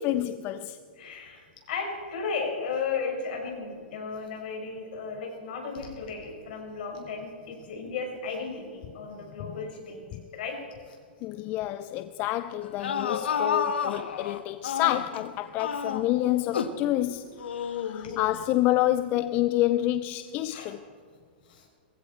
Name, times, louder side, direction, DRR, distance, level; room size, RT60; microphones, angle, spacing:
voice 1, 0.0-0.8 10.1-10.2 11.2-17.3 17.6-20.8, left 14 dB, 30° left, 0.4 m, -28 dB
voice 2, 1.0-10.0 10.3-10.6 10.9-11.0 18.0-18.1 20.5-20.7 21.4-21.7, left 5 dB, 60° left, 5.2 m, -35 dB
sound 1, 12.6-15.2 15.6-16.8 17.4-18.4, left 7 dB, 85° left, 1.3 m, -30 dB
20.5 x 15.5 x 4.4 m
hypercardioid pair, 145°, 6 cm